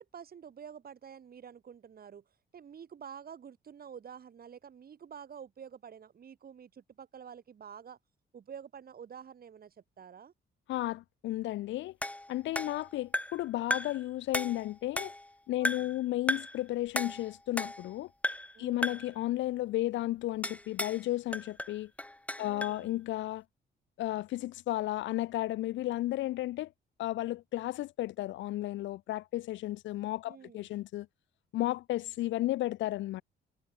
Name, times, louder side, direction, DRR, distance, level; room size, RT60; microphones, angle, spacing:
voice 1, 0.0-2.2 2.5-8.0 8.3-10.3 15.6-15.9 18.5-19.0 22.4-23.0 30.2-30.7, right 7 dB, 50° right, 2.7 m, -49 dB
voice 2, 10.7-12.0 12.3-15.1 15.5-18.1 18.6-21.9 22.4-23.4 24.0-26.7 27.0-31.1 31.5-33.2, left 15 dB, 70° left, 0.4 m, -33 dB
sound 1, 12.0-13.5 13.7-14.0 14.3-15.3 15.6-16.0 16.3-16.6 17.0-18.0 18.2-18.6 18.8-19.1 20.4-21.0 21.3-22.8, left 1 dB, 5° left, 1.0 m, -35 dB
cardioid pair, 90°, 20 cm